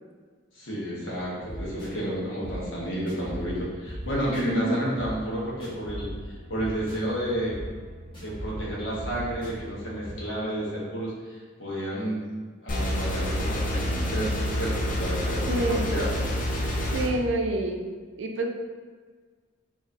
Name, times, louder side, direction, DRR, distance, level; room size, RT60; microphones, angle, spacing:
voice 1, 0.5-7.6 8.2-12.2 12.6-16.2, right 1 dB, 75° left, -6 dB, 1.2 m, -31 dB
sound 1, 1.1-10.1, equal, 25° left, 1.1 m, -39 dB
voice 2, 4.5-4.9 15.5-15.9 16.9-17.9 18.2-18.5, right 1 dB, 65° right, 3 dB, 0.4 m, -27 dB
sound 2, 12.7-17.1, equal, 40° left, 0.5 m, -28 dB
4.6 x 2.9 x 2.7 m, 1.5 s
head